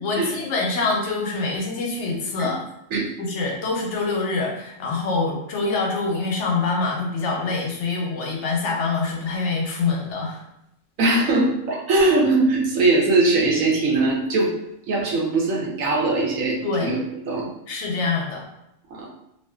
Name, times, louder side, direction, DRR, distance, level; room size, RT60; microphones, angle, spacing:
voice 1, 0.0-2.6 3.2-10.4 16.6-16.9 17.7-18.5, left 3 dB, 70° left, 0 dB, 0.8 m, -25 dB
voice 2, 11.0-14.6 14.9-17.5 18.9-19.1, right 2 dB, 85° right, -2 dB, 1.0 m, -21 dB
2.5 x 2.4 x 2.3 m, 0.81 s
omnidirectional pair, 1.4 m